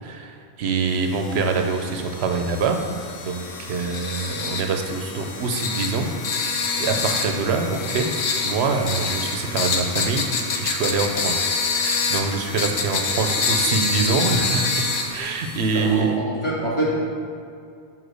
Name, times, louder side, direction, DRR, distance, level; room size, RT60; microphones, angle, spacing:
voice 1, 0.0-2.8 3.2-6.1 6.5-8.1 8.4-10.3 10.5-11.5 11.8-14.8 15.1-16.1, right 4 dB, 85° right, 4 dB, 1.0 m, -25 dB
sound 1, 1.1-16.0, left 4 dB, 80° left, 1.0 m, -27 dB
voice 2, 15.7-16.9, right 1 dB, 30° left, -7 dB, 1.9 m, -25 dB
5.7 x 5.0 x 6.3 m, 2.3 s
omnidirectional pair, 1.1 m